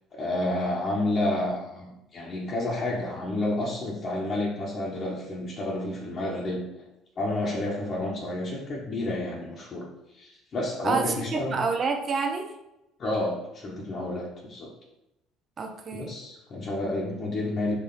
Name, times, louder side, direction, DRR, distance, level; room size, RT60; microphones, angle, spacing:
voice 1, 0.1-6.6 7.2-9.9 10.1-11.6 13.0-14.7 15.9-17.8, left 1 dB, 45° left, -4 dB, 1.0 m, -30 dB
voice 2, 10.8-12.5 15.6-16.1, right 4 dB, 40° right, 5 dB, 0.6 m, -28 dB
4.5 x 2.8 x 3.9 m, 0.90 s
hypercardioid pair, 65°, 0 cm